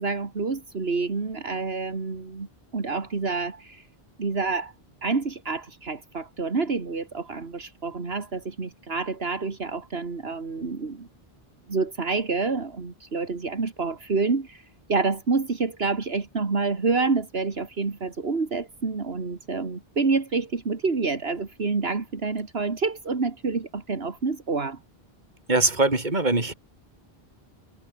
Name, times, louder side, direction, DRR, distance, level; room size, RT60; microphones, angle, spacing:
voice 1, 0.0-2.5 2.7-3.9 4.2-4.7 5.0-11.1 11.7-24.8, right 4 dB, 70° right, 2.4 m, -28 dB
voice 2, 25.5-26.5, right 2 dB, 45° right, 3.7 m, -22 dB
omnidirectional pair, 1.1 m